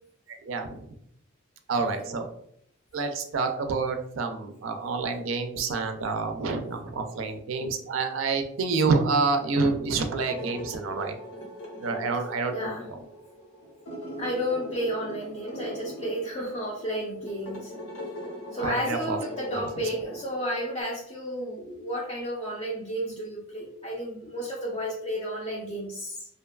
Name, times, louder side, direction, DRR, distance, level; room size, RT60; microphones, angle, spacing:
voice 1, 0.4-0.9 1.7-2.3 2.9-11.1 11.8-13.0 18.5-19.2 19.5-19.9, right 4 dB, 70° right, 6 dB, 0.4 m, -28 dB
sound 1, 10.1-20.8, equal, 85° left, 0.8 m, -41 dB
voice 2, 12.5-12.9 14.2-17.8 18.5-26.3, equal, 25° left, -3 dB, 0.4 m, -32 dB
2.7 x 2.3 x 2.2 m, 0.71 s
head